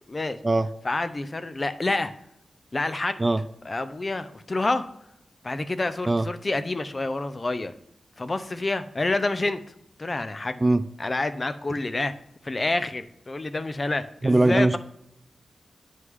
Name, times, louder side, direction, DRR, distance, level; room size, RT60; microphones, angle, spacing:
voice 1, 0.0-0.4 0.8-2.1 2.7-3.3 3.6-4.8 5.4-7.7 8.2-9.6 10.0-10.6 11.0-12.1 12.4-14.8, left 2 dB, 30° left, 11 dB, 0.6 m, -28 dB
voice 2, 14.2-14.8, right 2 dB, 20° right, 12 dB, 0.3 m, -20 dB
9.3 x 6.4 x 3.6 m, 0.77 s
wide cardioid pair, 125°, 0 cm